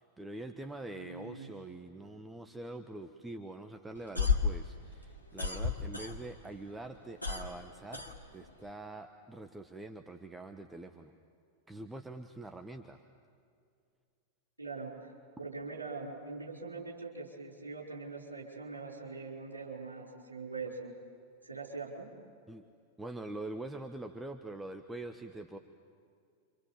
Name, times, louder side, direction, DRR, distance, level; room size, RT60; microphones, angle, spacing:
voice 1, 0.0-8.0 8.3-11.1 11.7-13.0 22.5-22.6 23.0-25.6, right 2 dB, 10° right, 6 dB, 1.2 m, -44 dB
voice 2, 0.9-1.5 14.6-15.1 15.4-21.0 21.4-22.1, right 4 dB, 80° right, -2 dB, 5.3 m, -42 dB
sound 1, 3.9-6.5 6.8-8.7, left 5 dB, 85° left, 2.1 m, -32 dB
30.0 x 26.0 x 7.4 m, 2.3 s
figure-of-eight pair, 90°, 0 cm